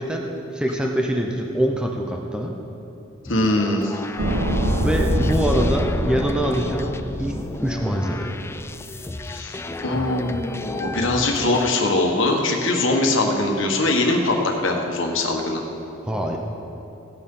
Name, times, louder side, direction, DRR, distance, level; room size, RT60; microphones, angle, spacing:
voice 1, 0.0-2.5 4.8-8.3 16.0-16.4, equal, 5° right, 0 dB, 0.7 m, -24 dB
sound 1, 3.2-11.7, left 2 dB, 15° left, 0.3 m, -34 dB
voice 2, 3.3-4.0 9.2-9.6 9.8-15.6, left 2 dB, 70° left, 1 dB, 1.5 m, -22 dB
sound 2, 4.2-8.5 8.7-8.8, equal, 75° right, 1.1 m, -25 dB
17.0 x 9.7 x 3.8 m, 2.8 s
head